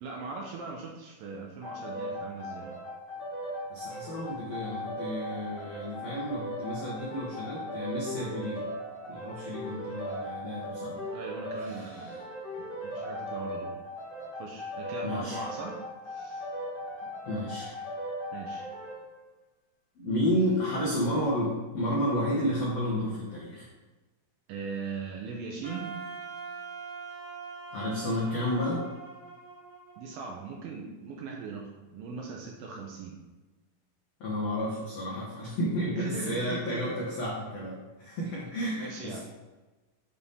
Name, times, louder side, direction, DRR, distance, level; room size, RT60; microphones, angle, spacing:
voice 1, 0.0-2.8 11.1-12.2 12.6-13.8 14.4-16.5 18.3-18.7 24.5-25.9 30.0-33.2 36.0-36.8 38.2-38.4 38.8-39.2, right 4 dB, 80° right, 0 dB, 2.1 m, -39 dB
sound 1, 1.6-19.0, equal, 45° left, 1.7 m, -38 dB
voice 2, 3.7-8.6 9.1-11.0 11.6-12.2 15.0-15.4 17.2-17.8 20.0-23.7 27.7-28.8 34.2-39.2, equal, 80° left, -6 dB, 1.4 m, -31 dB
Wind instrument woodwind instrument, 25.6-30.7, right 5 dB, 30° right, 1.1 m, -43 dB
7.1 x 3.5 x 4.0 m, 1.2 s
omnidirectional pair, 4.6 m